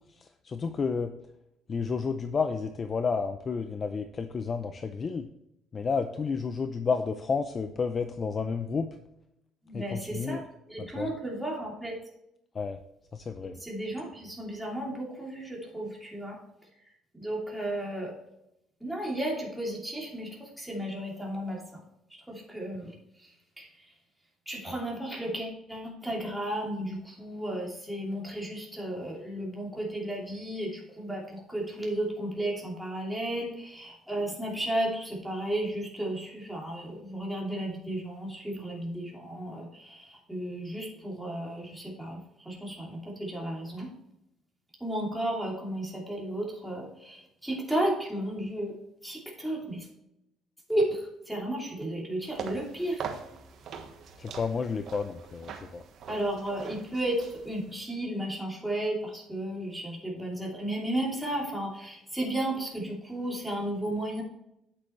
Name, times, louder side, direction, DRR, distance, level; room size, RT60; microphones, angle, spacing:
voice 1, 0.1-1.1 1.7-5.3 5.7-9.0 9.7-10.4 10.8-11.1 12.5-12.8 13.1-13.6 54.2-55.8, left 5 dB, 30° left, 8 dB, 0.5 m, -31 dB
voice 2, 9.6-11.9 13.6-16.4 17.1-18.1 18.8-21.8 22.1-23.3 23.6-23.9 24.5-43.9 44.8-48.7 49.0-49.9 50.7-53.1 56.1-64.2, right 1 dB, ahead, -3 dB, 2.9 m, -33 dB
sound 1, 52.2-57.8, right 6 dB, 55° right, 1.3 m, -42 dB
9.0 x 8.1 x 3.2 m, 0.82 s
cardioid pair, 150°, 0 cm